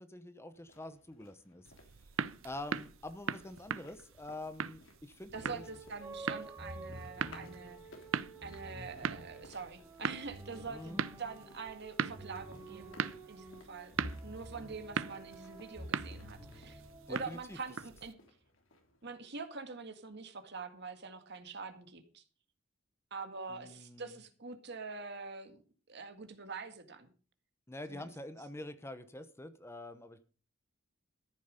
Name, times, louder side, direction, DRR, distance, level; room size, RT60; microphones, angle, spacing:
voice 1, 0.0-1.7 2.4-5.6 10.7-11.0 17.1-17.6 23.5-24.2 27.7-30.2, left 1 dB, 15° left, 11 dB, 0.9 m, -46 dB
sound 1, 0.5-19.1, left 2 dB, 75° left, 3.2 m, -61 dB
sound 2, 1.6-18.1, right 6 dB, 75° right, 0.6 m, -41 dB
sound 3, 5.3-17.3, right 1 dB, 15° right, 3.4 m, -49 dB
voice 2, 5.3-7.8 8.4-16.8 17.1-18.1 19.0-22.2 23.1-25.6 25.9-27.1 27.9-28.1, right 4 dB, 55° right, 8 dB, 1.9 m, -45 dB
14.0 x 9.3 x 5.2 m, 0.38 s
head